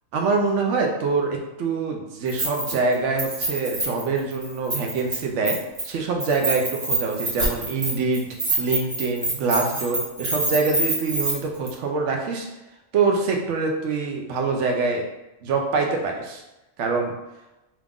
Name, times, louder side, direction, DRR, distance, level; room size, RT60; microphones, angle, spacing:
voice 1, 0.1-5.6 5.8-8.3 8.6-12.5 12.9-15.0 15.4-16.4 16.8-17.1, right 4 dB, 70° right, 1 dB, 0.9 m, -24 dB
Keys jangling, 2.3-2.9 3.2-5.2 5.5-5.9 6.2-11.3 11.7-11.8, right 2 dB, 25° right, 1.2 m, -26 dB
3.0 x 2.4 x 3.5 m, 0.99 s
omnidirectional pair, 1.3 m